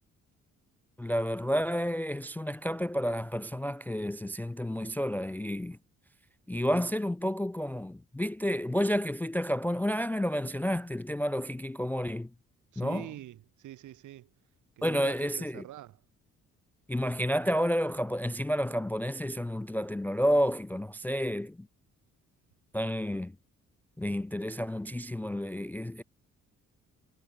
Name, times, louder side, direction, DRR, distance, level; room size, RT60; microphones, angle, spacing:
voice 1, 1.0-5.8 6.5-12.3 12.8-13.1 14.8-15.6 16.9-21.6 22.7-23.3 24.0-26.0, equal, 5° left, 0.3 m, -30 dB
voice 2, 12.7-14.3 14.8-16.0, right 13 dB, 75° right, 1.9 m, -45 dB
cardioid pair, 90°, 30 cm